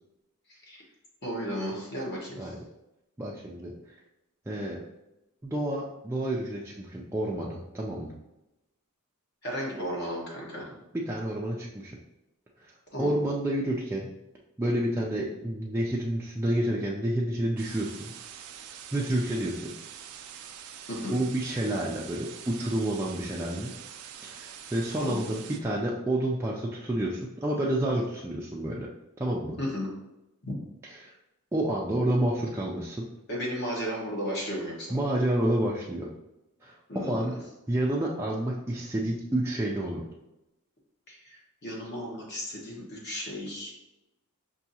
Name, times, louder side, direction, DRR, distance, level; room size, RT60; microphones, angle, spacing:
voice 1, 0.5-0.8 1.2-2.5 9.4-10.7 12.9-13.2 20.9-21.2 25.0-25.2 29.6-29.9 30.4-30.5 33.3-34.9 36.9-37.2 41.1-43.7, equal, 50° left, -3 dB, 1.3 m, -34 dB
voice 2, 3.2-4.0 4.5-4.8 5.4-8.1 10.9-12.0 12.6-12.7 13.0-14.1 14.6-18.1 18.7-19.7 21.1-23.7 24.2-28.9 29.2-29.6 31.0-31.1 31.5-33.1 34.9-36.1 36.6-37.3 37.7-40.1, right 1 dB, 10° right, -4 dB, 0.3 m, -29 dB
sound 1, 17.6-25.6, right 9 dB, 85° right, 0.4 m, -45 dB
5.7 x 2.7 x 2.7 m, 0.94 s
head